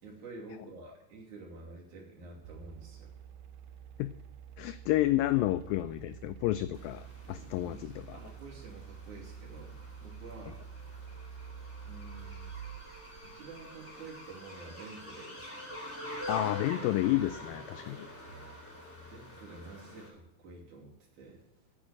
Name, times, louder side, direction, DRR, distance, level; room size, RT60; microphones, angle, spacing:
voice 1, 0.0-3.1 7.6-10.6 11.8-12.5 13.2-15.5 18.3-18.4 19.1-21.4, right 3 dB, 55° right, -2 dB, 4.0 m, -49 dB
sound 1, 2.4-14.7, right 7 dB, 80° right, 2.1 m, -48 dB
voice 2, 4.6-8.2 16.3-18.1, left 15 dB, 85° left, 13 dB, 2.0 m, -30 dB
sound 2, 6.7-20.1, left 1 dB, 20° left, 2.2 m, -46 dB
8.9 x 8.8 x 8.7 m, 0.89 s
omnidirectional pair, 4.5 m